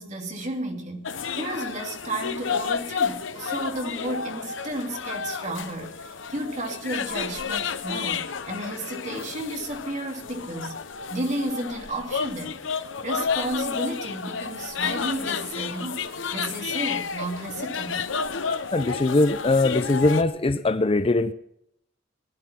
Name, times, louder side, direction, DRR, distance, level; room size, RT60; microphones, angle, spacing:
voice 1, 0.0-10.8 11.1-12.6 13.0-18.1, right 1 dB, 40° right, 2.7 m, -33 dB
sound 1, 1.0-20.2, left 6 dB, 85° left, 0.8 m, -31 dB
voice 2, 18.7-21.3, left 2 dB, 30° left, 0.6 m, -21 dB
19.5 x 11.5 x 5.9 m
head